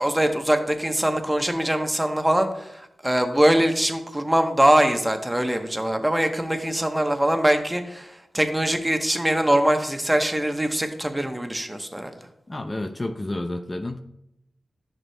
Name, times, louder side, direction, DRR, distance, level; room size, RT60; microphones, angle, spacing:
voice 1, 0.0-12.1, right 1 dB, 10° right, 6 dB, 0.9 m, -22 dB
voice 2, 12.5-14.0, left 1 dB, 30° left, 6 dB, 0.5 m, -30 dB
10.5 x 6.1 x 2.2 m, 0.83 s
cardioid pair, 55°, 0 cm